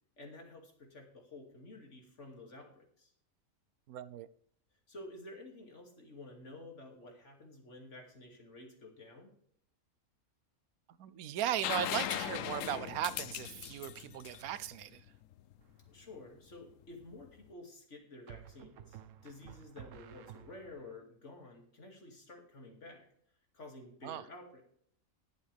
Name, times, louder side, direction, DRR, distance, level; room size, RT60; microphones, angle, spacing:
voice 1, 0.2-3.1 4.9-9.3 15.9-23.0 23.5-24.6, left 2 dB, 55° left, 2.8 m, -51 dB
voice 2, 3.9-4.3 11.0-15.1 24.0-24.2, right 11 dB, 85° right, 1.1 m, -37 dB
sound 1, 11.6-15.3 17.2-17.3, left 12 dB, 70° left, 0.9 m, -38 dB
sound 2, 15.6-16.1 18.3-20.9, right 11 dB, 65° right, 1.0 m, -53 dB
21.0 x 7.2 x 3.4 m
omnidirectional pair, 1.5 m